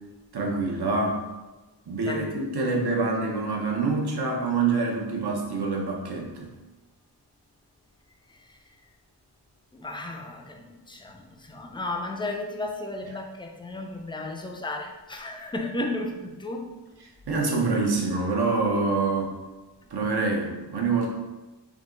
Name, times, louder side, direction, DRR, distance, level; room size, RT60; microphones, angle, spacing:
voice 1, 0.3-1.2 1.9-6.5 17.0-19.4 19.9-21.1, right 3 dB, 60° right, 0 dB, 0.9 m, -26 dB
voice 2, 9.7-16.6, left 2 dB, 10° left, 2 dB, 0.4 m, -34 dB
3.7 x 2.8 x 3.8 m, 1.2 s
wide cardioid pair, 105°, 43 cm